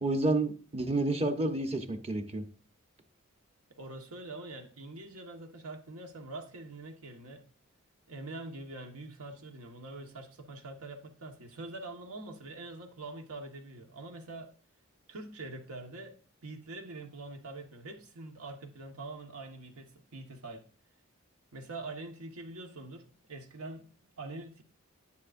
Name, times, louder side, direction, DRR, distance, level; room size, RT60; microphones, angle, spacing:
voice 1, 0.0-2.4, right 2 dB, 25° right, 0.9 m, -30 dB
voice 2, 3.8-7.4 8.1-14.5 15.1-16.2 16.4-20.6 21.5-23.9 24.2-24.6, right 2 dB, 85° right, 1.4 m, -44 dB
10.0 x 9.7 x 2.6 m
head